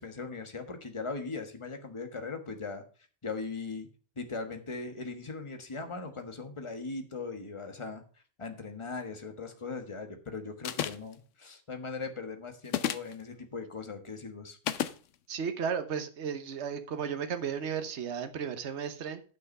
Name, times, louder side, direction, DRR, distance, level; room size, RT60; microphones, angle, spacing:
voice 1, 0.0-2.8 3.2-3.9 4.2-8.0 8.4-14.6, left 4 dB, 25° left, 1.3 m, -39 dB
sound 1, 10.6-11.1 12.7-13.1 14.7-15.0, left 10 dB, 80° left, 1.0 m, -31 dB
voice 2, 15.3-19.2, right 7 dB, 65° right, 1.2 m, -34 dB
9.3 x 5.9 x 5.4 m
omnidirectional pair, 1.3 m